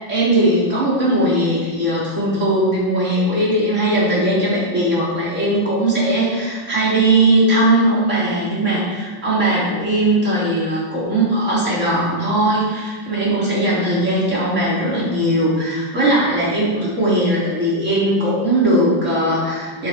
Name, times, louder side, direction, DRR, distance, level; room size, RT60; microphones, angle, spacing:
voice 1, 0.1-19.9, right 1 dB, 40° right, -7 dB, 3.8 m, -19 dB
12.0 x 11.0 x 4.4 m, 1.5 s
omnidirectional pair, 2.1 m